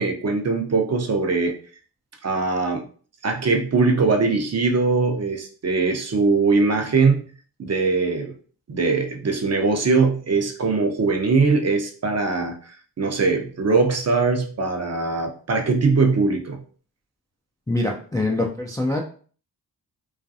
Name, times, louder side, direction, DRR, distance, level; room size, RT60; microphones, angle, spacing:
voice 1, 0.0-1.5 2.2-2.8 3.2-7.3 7.6-8.3 8.7-12.6 13.0-16.6, right 4 dB, 35° right, 3 dB, 0.6 m, -21 dB
voice 2, 17.7-19.0, left 2 dB, 10° left, 0 dB, 0.3 m, -24 dB
2.4 x 2.2 x 2.6 m, 0.43 s
supercardioid pair, 45°, 46 cm